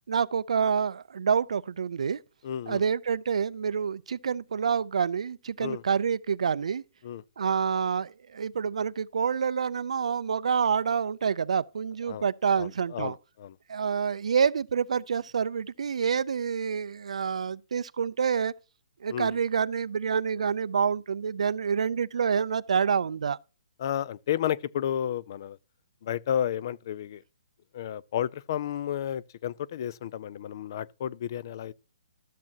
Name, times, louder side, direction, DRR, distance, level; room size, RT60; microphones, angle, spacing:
voice 1, 0.1-2.2 2.7-6.8 7.4-13.2 13.7-18.5 19.0-23.4, right 6 dB, 70° right, 0.4 m, -27 dB
voice 2, 2.4-2.8 5.6-5.8 7.0-7.2 12.1-12.3 12.6-13.6 19.1-19.4 23.8-25.6 26.0-27.2 27.7-31.7, left 10 dB, 35° left, 0.4 m, -32 dB
13.0 x 7.4 x 2.8 m
hypercardioid pair, 175°, 4 cm